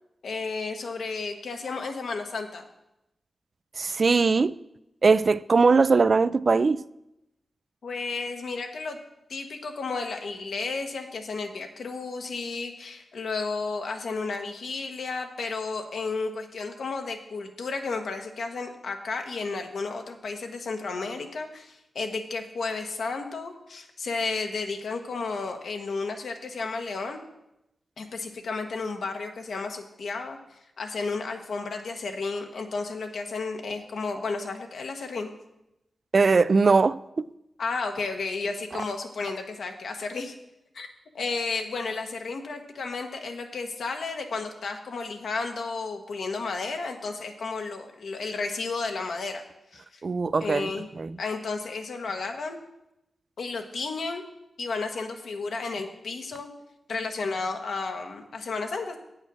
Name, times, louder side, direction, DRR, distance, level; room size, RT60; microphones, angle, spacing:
voice 1, 0.2-2.6 7.8-9.0 9.3-27.2 28.0-35.3 37.6-40.3 40.7-40.9 41.1-49.4 49.7-50.0 50.4-50.9 51.2-52.6 53.4-54.2 54.6-56.5 56.9-59.0, left 4 dB, 75° left, 1.1 m, -32 dB
voice 2, 3.8-4.5 5.0-6.8 36.1-37.3 50.0-50.7 51.0-51.2, right 4 dB, 50° right, 0.3 m, -21 dB
8.7 x 6.4 x 6.2 m
cardioid pair, 60°, 0 cm